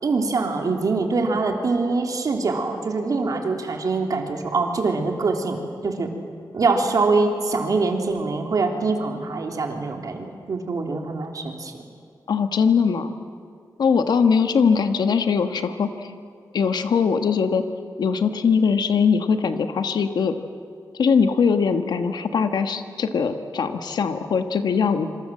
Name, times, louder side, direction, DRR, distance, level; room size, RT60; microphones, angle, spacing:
voice 1, 0.0-6.1 6.5-11.7, right 3 dB, 55° right, 3 dB, 3.3 m, -24 dB
voice 2, 12.3-13.1 13.8-16.1 16.5-17.6 18.0-20.3 21.0-25.1, left 6 dB, 85° left, 8 dB, 1.4 m, -21 dB
26.5 x 26.0 x 7.7 m, 2.2 s
wide cardioid pair, 130°, 7 cm